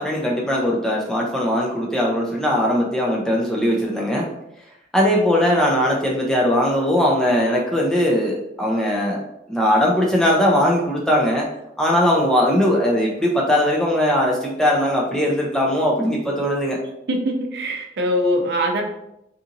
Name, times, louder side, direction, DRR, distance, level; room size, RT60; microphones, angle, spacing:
voice 1, 0.0-4.3 4.9-9.2 9.5-11.5 11.8-16.8, equal, 5° left, -3 dB, 0.3 m, -19 dB
voice 2, 17.1-18.8, equal, 65° right, 2 dB, 0.4 m, -22 dB
2.7 x 2.5 x 2.5 m, 0.82 s
head